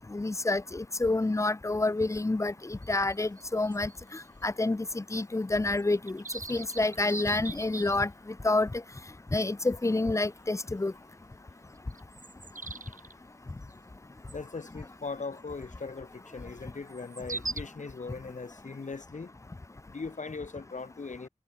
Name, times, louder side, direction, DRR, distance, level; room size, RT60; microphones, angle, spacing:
voice 1, 0.1-3.9 4.4-6.2 6.5-8.1 8.4-8.7 9.3-10.9, left 2 dB, 20° left, 0.5 m, -28 dB
sound 1, 1.9-2.0 2.3-2.4 2.8-4.5 4.8-4.9 5.3-5.4 5.8-8.4 9.0-9.1 9.6-9.8 10.1-10.3 11.2-11.3 11.8-13.1 14.3-14.5 14.9-15.0 16.9-17.6, right 3 dB, 70° right, 2.6 m, -41 dB
voice 2, 14.3-19.3 19.9-21.3, left 4 dB, 60° left, 0.9 m, -39 dB
wide cardioid pair, 70°, 14 cm